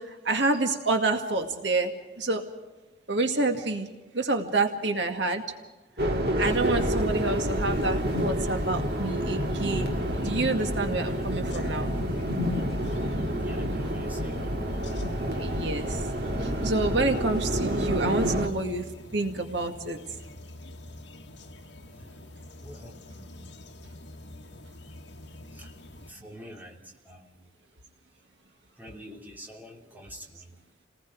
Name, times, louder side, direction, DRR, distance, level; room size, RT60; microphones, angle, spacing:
voice 1, 0.0-2.5 3.1-3.9 4.1-5.4 6.4-12.0 15.3-16.1 16.4-18.9 19.1-20.0, right 2 dB, 70° right, 4 dB, 2.0 m, -28 dB
sound 1, 6.0-18.5, equal, 55° right, 2.0 m, -28 dB
sound 2, 6.4-26.1, left 1 dB, 75° left, 1.6 m, -44 dB
voice 2, 13.4-14.4 21.9-22.3 22.6-23.0 25.5-27.5 28.8-30.6, equal, 10° right, -1 dB, 2.9 m, -47 dB
29.5 x 19.5 x 4.8 m, 1.2 s
head